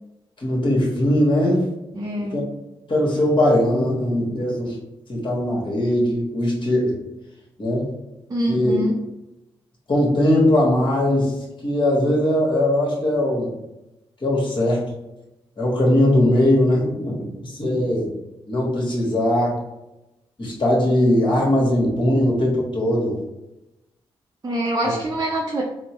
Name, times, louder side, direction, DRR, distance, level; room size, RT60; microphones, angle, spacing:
voice 1, 0.4-1.7 2.3-2.5 2.9-4.8 5.1-7.0 7.6-7.9 8.5-8.8 9.9-11.3 11.6-13.5 14.2-14.9 15.6-18.1 18.5-19.6 20.4-23.2, left 1 dB, 45° left, -3 dB, 1.4 m, -20 dB
voice 2, 1.9-2.4 8.3-9.0 24.4-25.6, equal, 30° right, -2 dB, 0.6 m, -25 dB
3.4 x 2.1 x 2.9 m, 0.95 s
supercardioid pair, 40°, 11 cm